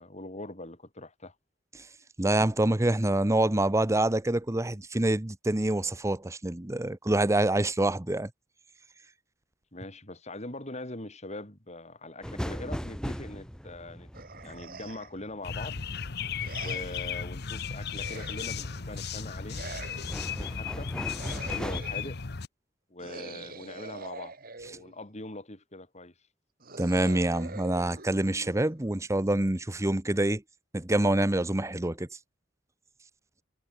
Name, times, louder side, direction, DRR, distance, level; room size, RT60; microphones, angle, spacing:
voice 1, 0.0-1.3 9.7-14.1 14.4-15.8 16.6-20.9 21.4-22.2 22.9-24.3 24.6-26.1, left 2 dB, 35° left, 5.7 m, -42 dB
voice 2, 2.2-8.3 26.8-30.4 30.7-32.1, right 1 dB, 15° right, 0.9 m, -26 dB
sound 1, 12.2-16.1 18.6-19.0 19.5-21.8, equal, 5° left, 3.3 m, -38 dB
sound 2, 14.1-15.3 16.4-17.2 17.9-18.8 19.5-20.4 21.1-22.2 23.0-25.1 26.6-29.0, right 3 dB, 50° right, 4.8 m, -45 dB
sound 3, 15.4-22.5, left 6 dB, 60° left, 1.0 m, -35 dB
head